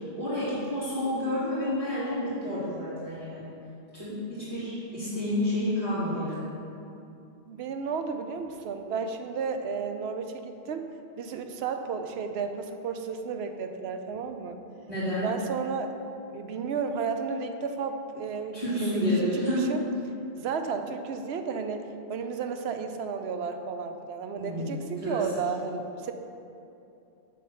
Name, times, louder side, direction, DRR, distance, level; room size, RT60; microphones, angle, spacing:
voice 1, 0.0-3.5 3.9-6.6 14.9-15.3 18.5-19.7 24.4-25.2, left 1 dB, 30° right, -12 dB, 2.0 m, -30 dB
voice 2, 7.5-10.9 11.2-14.6 15.2-15.9 16.3-19.0 19.3-19.8 20.3-26.1, right 5 dB, 80° right, 7 dB, 0.8 m, -33 dB
9.3 x 3.4 x 6.7 m, 2.7 s
omnidirectional pair, 1.1 m